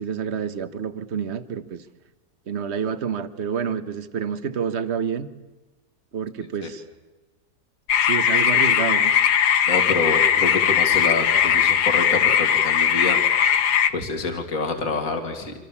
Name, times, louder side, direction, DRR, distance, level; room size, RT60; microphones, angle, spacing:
voice 1, 0.0-1.9 2.5-5.3 6.1-6.8 8.0-9.1, right 7 dB, 45° right, 11 dB, 1.3 m, -28 dB
sound 1, 7.9-13.9, left 8 dB, 80° left, 1.6 m, -19 dB
voice 2, 9.7-13.2 13.9-15.5, left 3 dB, 55° left, 4 dB, 2.7 m, -27 dB
27.5 x 25.5 x 7.2 m, 1.1 s
omnidirectional pair, 1.7 m